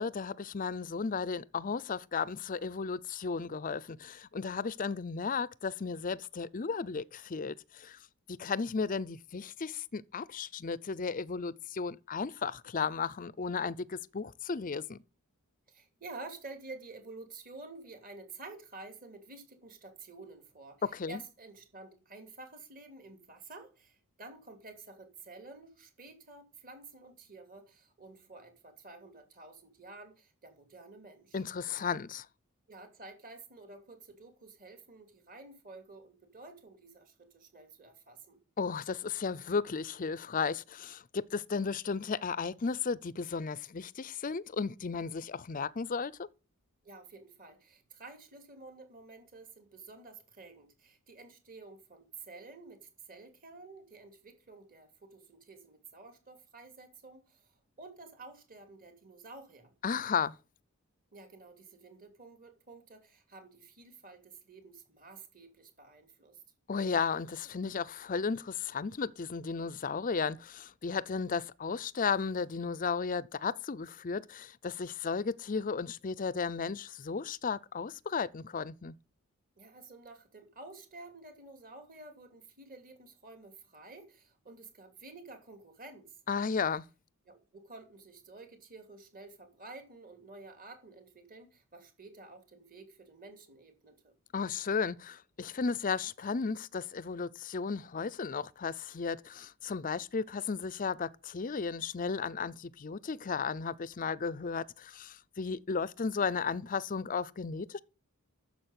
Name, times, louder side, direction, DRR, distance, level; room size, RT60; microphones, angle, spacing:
voice 1, 0.0-8.0 8.3-15.0 20.8-21.2 31.3-32.3 38.6-46.3 59.8-60.4 66.7-78.9 86.3-86.8 94.3-107.8, left 5 dB, 35° left, 0.5 m, -34 dB
voice 2, 15.7-31.4 32.7-38.4 46.8-59.7 61.1-66.4 79.6-86.1 87.3-94.1, right 3 dB, 40° right, 2.9 m, -51 dB
10.0 x 7.3 x 8.0 m
head